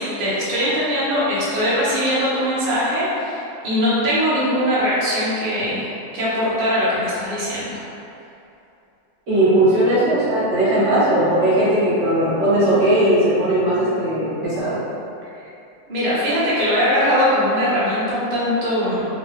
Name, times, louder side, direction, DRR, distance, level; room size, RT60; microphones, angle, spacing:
voice 1, 0.0-7.8 15.9-19.0, equal, 45° right, -9 dB, 0.8 m, -21 dB
voice 2, 9.3-14.8, right 1 dB, 65° right, -13 dB, 1.8 m, -18 dB
3.9 x 2.3 x 3.1 m, 2.7 s
omnidirectional pair, 2.1 m